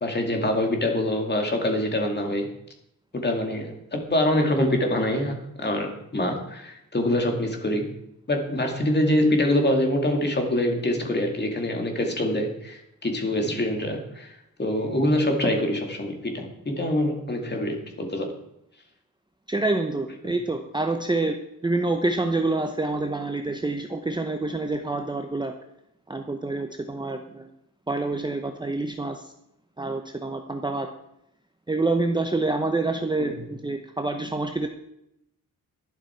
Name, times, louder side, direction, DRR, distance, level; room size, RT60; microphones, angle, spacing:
voice 1, 0.0-2.5 3.1-7.9 8.3-18.3 33.2-33.3, left 1 dB, 30° left, 3 dB, 2.4 m, -25 dB
voice 2, 19.5-21.4 21.6-25.5 26.1-27.5 27.9-29.3 29.8-30.9 31.7-34.7, right 2 dB, 10° right, 5 dB, 0.8 m, -27 dB
12.0 x 11.5 x 4.5 m, 0.79 s
wide cardioid pair, 145°, 36 cm